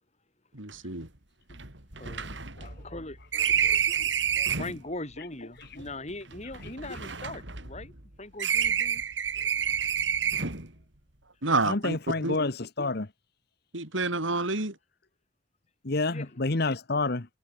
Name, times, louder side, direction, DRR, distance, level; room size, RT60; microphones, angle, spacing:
voice 1, 0.5-1.1 11.4-12.0 12.2-12.4 13.7-14.8, right 3 dB, 90° right, 5.7 m, -28 dB
sound 1, 0.7-0.8 1.0-1.1 1.5-4.8 5.6-8.1 8.4-10.7, right 8 dB, 65° right, 4.0 m, -29 dB
voice 2, 2.0-7.9 8.2-9.0 16.1-16.4, left 2 dB, 35° left, 4.9 m, -41 dB
voice 3, 11.7-13.1 15.8-17.3, left 3 dB, 55° left, 1.3 m, -28 dB
head